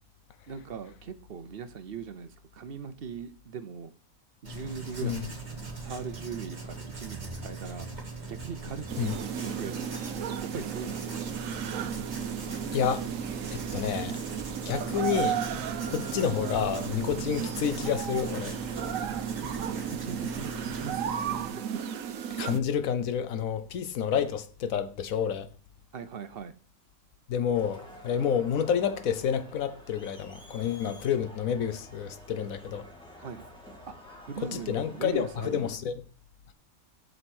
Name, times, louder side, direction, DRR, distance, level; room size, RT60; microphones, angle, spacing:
voice 1, 0.5-3.9 4.4-5.3 5.8-7.9 8.3-10.1 10.4-11.4 19.7-21.4 25.9-26.6 33.2-33.4 33.9-34.0 34.3-35.9, right 6 dB, 50° right, 0.8 m, -40 dB
Writing, 4.4-21.5, right 3 dB, 30° right, 1.7 m, -40 dB
sound 1, 8.9-22.6, right 8 dB, 70° right, 1.1 m, -34 dB
voice 2, 12.7-13.1 13.5-14.2 14.7-15.4 15.9-18.6 22.4-25.5 27.3-32.9 34.4-35.9, left 8 dB, 75° left, 1.2 m, -29 dB
Crowd, 27.5-35.7, equal, 5° left, 1.9 m, -50 dB
7.9 x 5.3 x 6.0 m
omnidirectional pair, 1.5 m